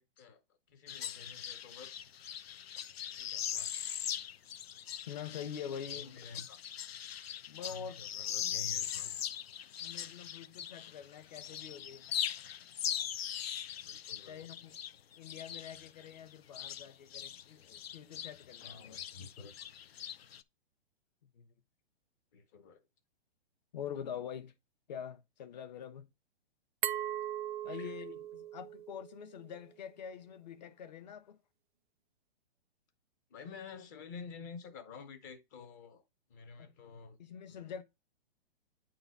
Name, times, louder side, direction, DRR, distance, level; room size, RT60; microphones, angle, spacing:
voice 1, 0.0-2.1 3.1-3.7 5.9-6.6 7.6-9.2 13.8-14.5 18.6-19.5 22.3-22.8 27.7-28.0 33.3-36.0 36.3-37.2 37.5-37.7, left 5 dB, 20° left, 0.7 m, -50 dB
sound 1, 0.9-11.0 11.3-17.4 17.7-20.4, left 10 dB, 75° left, 0.7 m, -40 dB
voice 2, 5.1-6.4 7.5-8.0 8.4-8.7 9.8-12.1 14.3-14.8 15.2-19.0 21.4-21.5 23.7-24.5 24.9-26.1 27.6-31.4 36.6-36.7 37.2-37.8, left 8 dB, 45° left, 1.0 m, -45 dB
Glass, 26.8-29.6, right 11 dB, 55° right, 0.5 m, -39 dB
9.2 x 4.0 x 4.0 m
hypercardioid pair, 170°, 31 cm